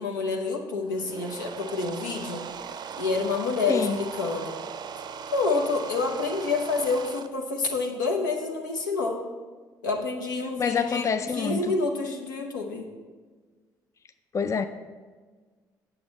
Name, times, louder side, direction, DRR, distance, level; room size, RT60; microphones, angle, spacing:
voice 1, 0.0-2.4 3.0-4.6 5.3-9.2 9.8-11.1 11.3-12.9, left 3 dB, 80° left, 2 dB, 0.8 m, -28 dB
sound 1, 0.8-7.3, right 7 dB, 45° right, 0.5 m, -39 dB
voice 2, 10.6-11.7 14.3-14.7, left 6 dB, 30° left, 10 dB, 0.4 m, -26 dB
8.6 x 7.2 x 4.1 m, 1.4 s
figure-of-eight pair, 45°, 10 cm